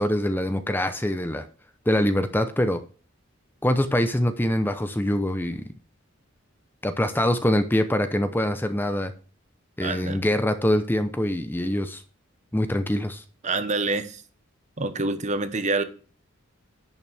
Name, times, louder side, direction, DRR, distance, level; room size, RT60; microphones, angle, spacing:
voice 1, 0.0-1.5 1.9-2.8 3.6-5.6 6.8-9.1 9.8-12.0 12.5-13.2, left 1 dB, 10° left, 0.7 m, -24 dB
voice 2, 9.8-10.2 13.4-14.2 14.8-15.8, right 3 dB, 35° right, 1.1 m, -26 dB
11.0 x 8.8 x 3.5 m
head